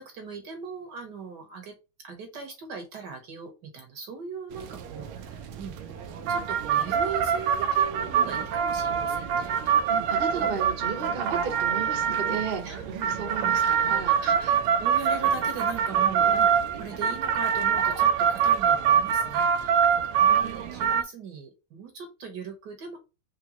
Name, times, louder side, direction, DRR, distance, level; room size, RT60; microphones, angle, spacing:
voice 1, 0.0-1.7 2.0-5.7 6.3-9.5 10.4-10.6 12.6-12.8 13.4-23.0, right 5 dB, 60° right, 4 dB, 1.4 m, -40 dB
sound 1, 4.5-21.0, right 7 dB, 75° right, 1.4 m, -25 dB
voice 2, 9.9-14.1, right 6 dB, 35° right, 3 dB, 1.0 m, -34 dB
5.0 x 3.3 x 2.9 m, 0.28 s
omnidirectional pair, 2.4 m